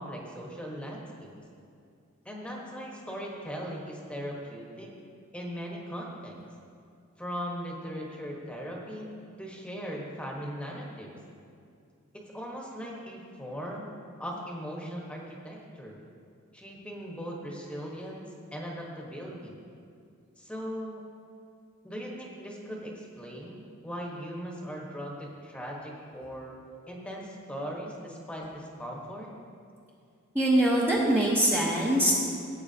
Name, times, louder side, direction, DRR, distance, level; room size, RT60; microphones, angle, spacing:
voice 1, 0.0-1.3 2.2-4.9 5.3-6.3 7.2-9.1 9.4-11.2 12.1-13.9 14.2-16.0 16.5-19.6 20.4-21.0 21.8-26.6 26.9-29.3, equal, 5° left, -2 dB, 1.3 m, -39 dB
voice 2, 30.3-32.2, right 1 dB, 10° right, -7 dB, 1.1 m, -23 dB
17.0 x 8.4 x 2.9 m, 2.4 s
head